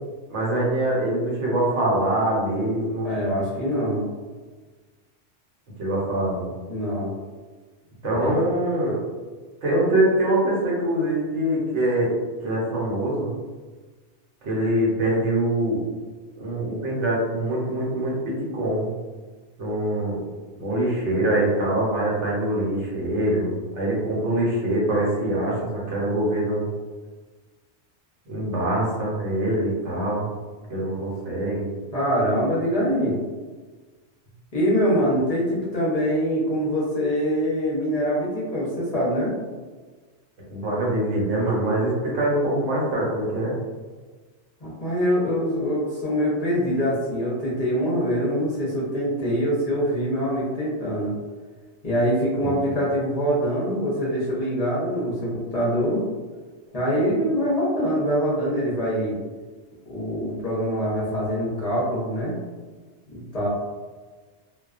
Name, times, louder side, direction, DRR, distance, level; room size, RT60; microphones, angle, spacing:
voice 1, 0.3-3.1 5.8-6.5 8.0-9.0 9.6-12.1 12.4-13.3 14.4-15.8 16.4-18.9 19.6-20.2 20.6-26.7 28.3-30.3 30.7-31.7 40.5-43.5 52.4-52.6, right 1 dB, 85° right, -5 dB, 1.1 m, -24 dB
voice 2, 3.0-4.0 6.7-7.1 8.2-8.3 31.9-33.2 34.5-39.3 44.6-51.1 51.8-56.0 56.7-59.2 59.9-62.4 63.1-63.5, equal, 40° left, -7 dB, 0.6 m, -24 dB
2.3 x 2.2 x 2.3 m, 1.4 s
omnidirectional pair, 1.2 m